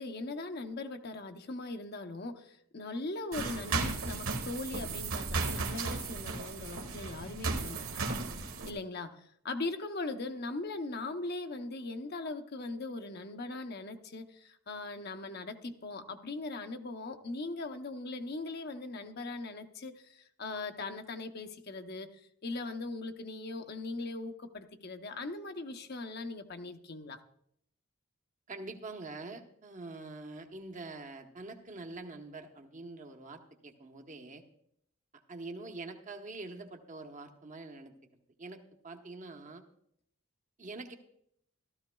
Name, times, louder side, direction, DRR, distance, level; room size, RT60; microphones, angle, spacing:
voice 1, 0.0-22.1 22.4-27.2, left 2 dB, 50° left, 0.8 m, -40 dB
sound 1, 3.3-8.7, right 3 dB, 85° right, 1.4 m, -35 dB
voice 2, 28.5-34.4 35.3-37.9 38.4-39.6 40.6-40.9, right 3 dB, 35° right, 1.0 m, -45 dB
15.5 x 13.0 x 2.3 m
head